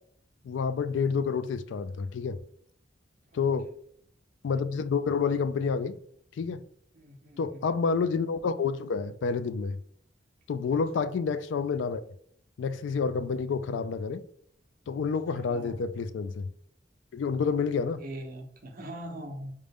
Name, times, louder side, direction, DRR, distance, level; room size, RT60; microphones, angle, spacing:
voice 1, 0.4-2.4 3.3-3.7 4.4-6.0 6.4-6.6 7.4-9.8 10.5-12.0 12.6-14.2 14.9-16.5 17.1-18.0, left 5 dB, 80° left, 0.3 m, -29 dB
voice 2, 3.3-3.7 6.9-7.7 10.7-10.8 15.3-15.8 18.0-19.5, right 1 dB, 50° right, 0.8 m, -42 dB
5.0 x 2.2 x 3.4 m
head